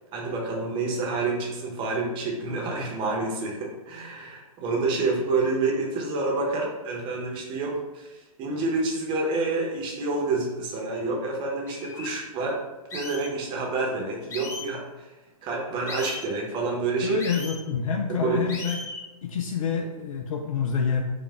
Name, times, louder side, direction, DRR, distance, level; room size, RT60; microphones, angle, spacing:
voice 1, 0.1-12.6 12.9-15.1 15.4-17.2 18.1-18.4, right 3 dB, 25° right, -1 dB, 0.9 m, -28 dB
sound 1, 11.2-11.3 11.7-12.1 12.9-13.3 14.3-14.7 15.9-16.3 17.2-17.6 18.5-19.0, left 3 dB, 15° left, 0.6 m, -37 dB
voice 2, 17.0-18.8 19.2-21.0, left 6 dB, 65° left, 3 dB, 0.4 m, -27 dB
4.7 x 2.4 x 3.5 m, 1.1 s
figure-of-eight pair, 120°, 19 cm